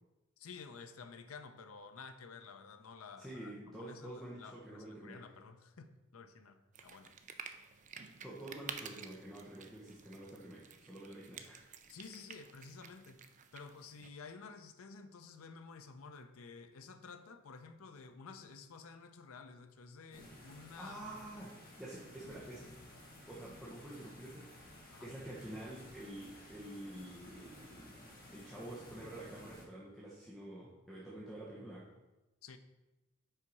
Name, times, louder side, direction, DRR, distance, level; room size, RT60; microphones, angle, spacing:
voice 1, 0.4-3.5 3.8-7.1 11.9-13.3 13.5-21.1 24.9-25.1 32.4-32.6, left 5 dB, 80° left, 9 dB, 0.6 m, -52 dB
voice 2, 3.2-5.2 8.2-11.6 20.8-22.7 23.3-24.6 25.0-28.0 28.3-31.9, right 1 dB, ahead, -6 dB, 1.0 m, -48 dB
sound 1, 6.7-14.1, right 6 dB, 35° right, 0.4 m, -51 dB
sound 2, 20.1-29.6, left 1 dB, 45° left, 1.8 m, -55 dB
5.7 x 4.6 x 5.3 m, 1.0 s
head